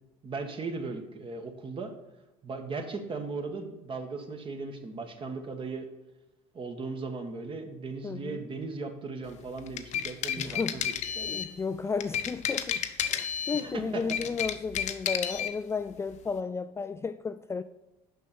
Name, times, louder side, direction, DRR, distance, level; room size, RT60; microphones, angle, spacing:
voice 1, 0.2-1.9 2.4-5.9 6.5-10.8 11.1-11.4 13.5-14.4, right 4 dB, 35° right, 1.4 m, -37 dB
voice 2, 8.0-8.4 10.4-10.8 11.2-17.6, left 5 dB, 20° left, 0.3 m, -33 dB
sound 1, 9.6-11.5 12.0-13.7 14.0-15.5, left 9 dB, 55° left, 0.8 m, -31 dB
6.5 x 5.5 x 6.7 m
supercardioid pair, 80°, 14 cm